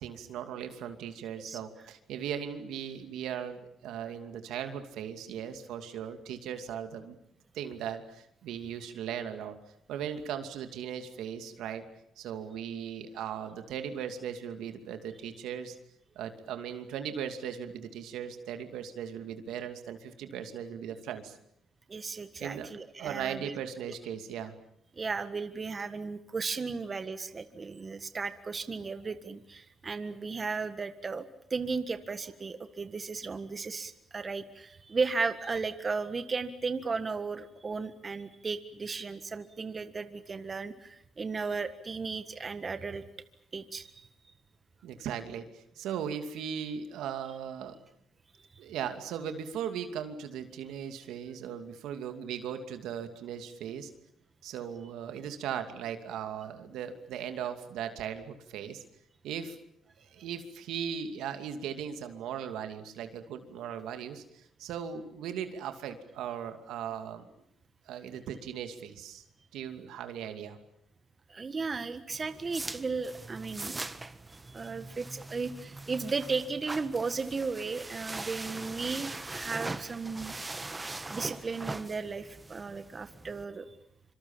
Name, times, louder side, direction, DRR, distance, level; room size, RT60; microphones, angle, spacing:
voice 1, 0.0-7.2 7.5-9.6 9.9-11.8 12.2-15.8 16.2-21.4 22.4-22.7 23.0-24.5 44.8-47.8 48.6-53.9 54.4-58.8 59.2-59.6 60.0-67.3 67.9-69.2 69.5-70.6, right 8 dB, 85° right, 7 dB, 2.6 m, -38 dB
voice 2, 21.9-23.5 23.9-24.0 25.0-31.2 31.5-43.0 43.5-44.0 71.3-73.8 74.5-80.3 81.1-83.7, right 4 dB, 35° right, 10 dB, 1.6 m, -35 dB
sound 1, 72.1-83.4, right 2 dB, 20° right, 1.4 m, -41 dB
26.0 x 25.5 x 7.3 m, 0.75 s
cardioid pair, 90°, 0 cm